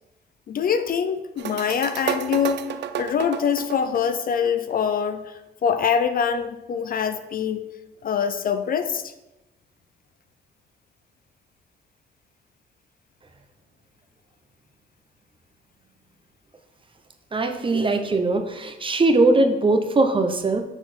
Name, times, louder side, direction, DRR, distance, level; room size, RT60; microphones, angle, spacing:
voice 1, 0.5-2.6 3.0-7.6 8.0-9.1, left 7 dB, 45° left, 10 dB, 0.5 m, -24 dB
sound 1, 1.4-4.8, right 9 dB, 60° right, 0.5 m, -31 dB
voice 2, 17.3-20.6, right 2 dB, 25° right, 7 dB, 0.7 m, -20 dB
6.9 x 4.1 x 4.3 m, 0.98 s
cardioid pair, 90°, 20 cm